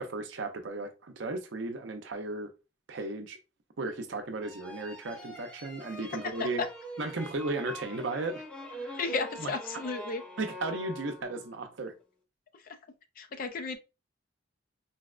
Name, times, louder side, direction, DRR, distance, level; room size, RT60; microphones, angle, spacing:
voice 1, 0.0-2.5 2.9-3.4 3.8-6.6 7.0-8.4 8.7-9.0 9.4-9.5 10.4-11.9, right 2 dB, 80° right, 0.6 m, -35 dB
sound 1, 4.4-11.6, equal, 5° left, 0.6 m, -43 dB
voice 2, 9.0-10.2 12.5-12.8 13.2-13.8, left 4 dB, 50° left, 0.4 m, -34 dB
4.0 x 2.1 x 2.4 m
head